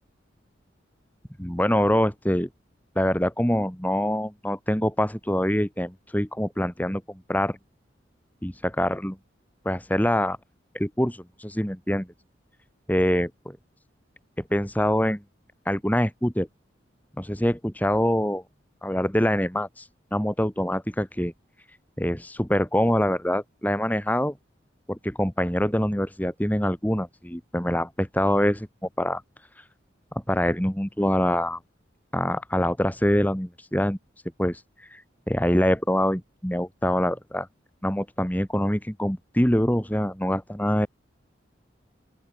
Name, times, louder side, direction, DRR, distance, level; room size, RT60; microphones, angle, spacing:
voice 1, 1.4-2.5 3.0-7.6 8.4-9.2 9.6-10.4 10.7-12.1 12.9-13.3 14.5-15.2 15.7-16.5 17.2-18.4 18.8-19.8 20.1-21.3 22.0-24.3 24.9-28.7 29.0-29.2 30.3-31.6 32.1-34.0 34.4-34.6 34.9-35.0 35.3-37.5 37.8-40.9, equal, 10° left, 2.6 m, -24 dB
open air
head